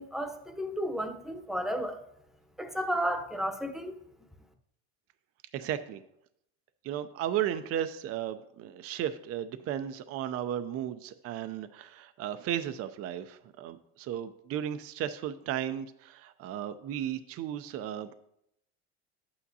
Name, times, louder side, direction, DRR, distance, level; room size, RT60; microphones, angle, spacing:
voice 1, 0.0-2.0 2.6-4.0, equal, ahead, 0.9 m, -33 dB
voice 2, 5.5-6.0 6.8-18.1, right 10 dB, 50° right, 0.5 m, -35 dB
11.5 x 8.5 x 2.7 m
supercardioid pair, 110°, 30 cm